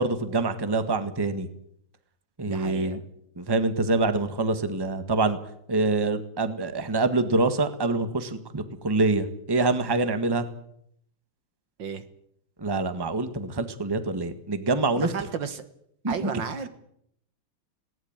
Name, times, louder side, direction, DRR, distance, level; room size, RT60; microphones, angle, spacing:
voice 1, 0.0-1.5 2.4-3.0 3.4-5.4 5.7-10.4 12.6-15.1 16.0-16.4, right 3 dB, 15° right, 10 dB, 1.4 m, -25 dB
voice 2, 2.5-3.0 11.8-12.0 15.0-15.6 16.1-16.7, right 6 dB, 65° right, 11 dB, 2.0 m, -33 dB
19.5 x 18.0 x 8.9 m, 0.71 s
omnidirectional pair, 2.3 m